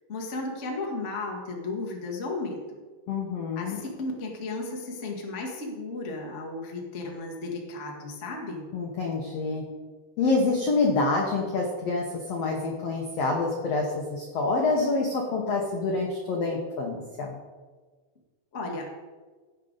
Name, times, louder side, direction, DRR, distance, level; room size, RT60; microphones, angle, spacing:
voice 1, 0.1-2.8 3.5-8.6 18.5-18.9, left 2 dB, 55° left, 0 dB, 0.7 m, -34 dB
voice 2, 3.1-3.8 8.7-9.6 10.2-17.4, left 3 dB, 75° left, 0 dB, 1.4 m, -27 dB
16.5 x 7.3 x 4.0 m, 1.4 s
omnidirectional pair, 4.7 m